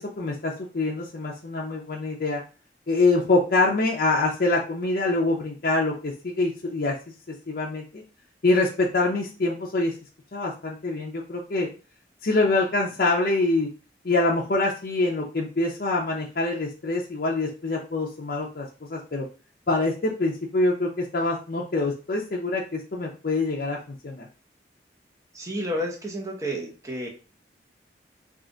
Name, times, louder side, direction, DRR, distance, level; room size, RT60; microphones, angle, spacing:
voice 1, 0.0-2.4 2.9-6.9 7.5-8.0 8.4-9.9 10.3-11.7 12.2-13.7 14.0-19.2 19.7-23.8 24.0-24.3, left 2 dB, 55° left, -3 dB, 0.6 m, -25 dB
voice 2, 25.3-27.1, equal, 20° right, -1 dB, 0.8 m, -31 dB
3.6 x 2.4 x 3.8 m, 0.35 s
head